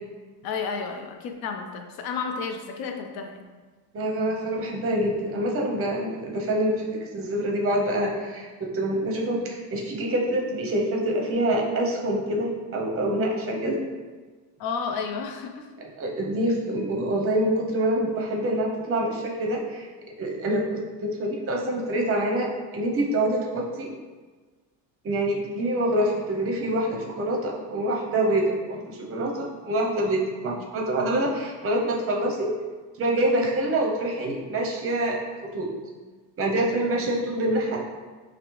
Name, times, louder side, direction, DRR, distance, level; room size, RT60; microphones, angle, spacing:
voice 1, 0.4-3.4 4.2-4.4 14.6-15.6, left 5 dB, 55° left, 4 dB, 0.6 m, -32 dB
voice 2, 3.9-13.8 16.0-19.9 20.2-23.9 25.0-32.5 33.0-35.2 35.5-35.7 36.4-37.8, right 1 dB, 30° right, -1 dB, 0.6 m, -26 dB
5.9 x 2.0 x 3.1 m, 1.4 s
cardioid pair, 150°, 45 cm